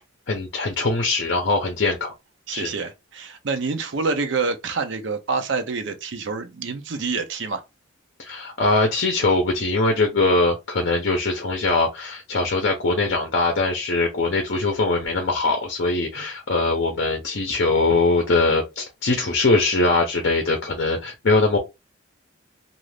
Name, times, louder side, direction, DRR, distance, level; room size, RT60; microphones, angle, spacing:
voice 1, 0.3-2.1 2.5-2.7 8.2-21.6, left 3 dB, 55° left, 0.6 m, -22 dB
voice 2, 2.5-7.6, right 4 dB, 60° right, 0.5 m, -27 dB
2.5 x 2.4 x 3.3 m
head